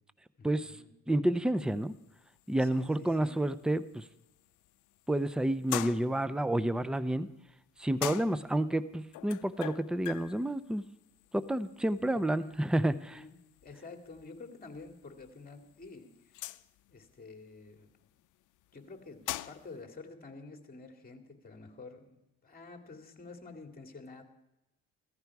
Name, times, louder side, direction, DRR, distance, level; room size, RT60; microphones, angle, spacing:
voice 1, 0.4-0.9 2.6-3.4 12.1-13.4 13.6-16.5 16.9-18.1 18.7-24.2, left 3 dB, 30° left, 4 dB, 2.4 m, -50 dB
voice 2, 1.1-1.9 2.5-4.0 5.1-7.3 7.8-10.8 11.3-13.2, right 1 dB, 5° right, 14 dB, 0.6 m, -30 dB
sound 1, 1.6-19.8, left 16 dB, 80° left, 0.6 m, -46 dB
15.5 x 14.5 x 4.7 m, 0.90 s
cardioid pair, 90°, 30 cm